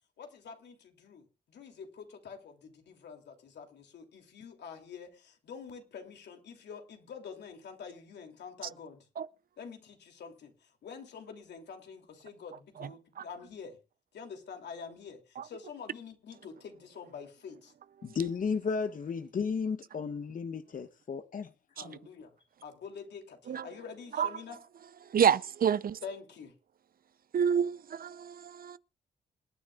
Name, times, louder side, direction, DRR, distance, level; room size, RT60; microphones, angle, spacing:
voice 1, 0.2-9.0 9.6-13.8 14.1-17.7 21.7-22.3 22.6-24.6 26.0-26.5, left 6 dB, 70° left, 3.1 m, -47 dB
voice 2, 18.0-21.5, left 5 dB, 50° left, 1.0 m, -33 dB
voice 3, 25.0-26.0 27.3-28.8, right 8 dB, 55° right, 0.6 m, -29 dB
27.5 x 9.4 x 2.5 m
supercardioid pair, 55°, 18 cm